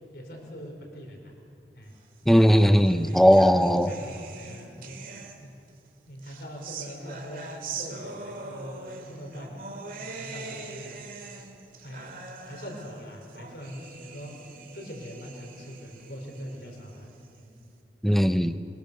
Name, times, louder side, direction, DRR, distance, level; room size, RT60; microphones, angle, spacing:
voice 1, 0.1-1.3 1.7-1.9 2.8-3.3 3.9-5.0 5.4-5.5 6.1-7.5 7.7-9.6 10.0-11.0 11.8-12.1 12.5-14.3 14.7-17.1 17.3-17.5, equal, 60° left, 2 dB, 4.3 m, -42 dB
voice 2, 2.3-3.9 18.0-18.6, equal, ahead, 10 dB, 0.7 m, -18 dB
sound 1, 2.3-5.7 6.2-17.7, right 4 dB, 50° right, 2.2 m, -43 dB
23.0 x 21.0 x 6.7 m, 2.7 s
head